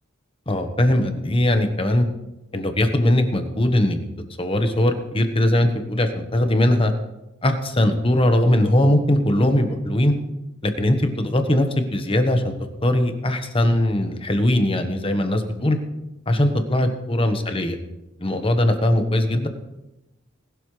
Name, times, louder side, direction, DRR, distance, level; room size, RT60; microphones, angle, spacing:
voice 1, 0.5-2.1 2.5-4.0 4.4-6.9 7.4-10.1 10.6-12.5 12.8-15.8 16.3-17.8 18.2-19.5, left 1 dB, 25° left, 7 dB, 1.3 m, -20 dB
20.0 x 12.0 x 3.3 m, 0.95 s
head